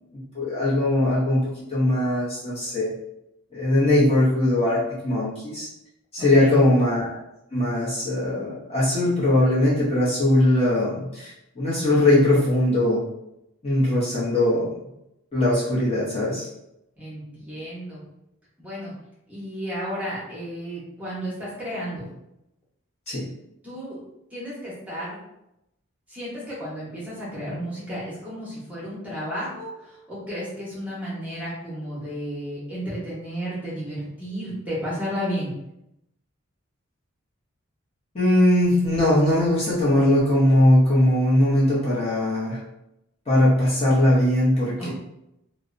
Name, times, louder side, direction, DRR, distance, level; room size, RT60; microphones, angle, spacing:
voice 1, 0.3-2.9 3.5-5.7 6.1-7.1 7.5-13.0 13.6-14.7 15.3-16.5 23.1-23.3 38.1-42.6 43.3-44.9, left 1 dB, 30° left, -8 dB, 0.6 m, -20 dB
voice 2, 6.2-6.6 17.0-18.0 18.6-18.9 19.3-22.1 23.6-24.0 24.3-25.2 26.1-35.5 44.8-44.9, equal, 5° right, -8 dB, 0.8 m, -33 dB
2.6 x 2.0 x 2.4 m, 0.84 s
head